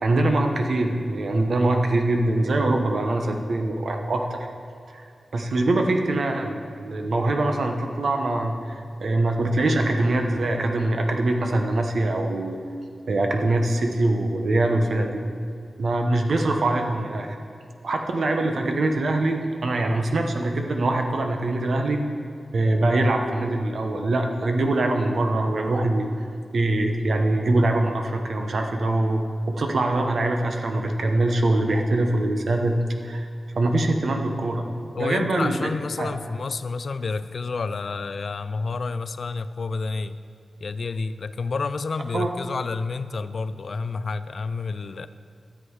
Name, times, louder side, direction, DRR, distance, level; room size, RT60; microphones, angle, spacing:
voice 1, 0.0-4.5 4.9-5.0 5.3-12.6 13.1-15.2 15.8-17.4 17.8-22.0 22.5-29.2 29.5-32.8 33.0-33.3 33.5-34.6 35.0-35.6 36.0-36.1 42.1-42.3, right 2 dB, 65° right, 4 dB, 1.0 m, -23 dB
voice 2, 34.9-40.2 40.6-45.1, left 4 dB, 55° left, 13 dB, 0.3 m, -29 dB
12.5 x 7.8 x 4.8 m, 2.4 s
wide cardioid pair, 165°, 0 cm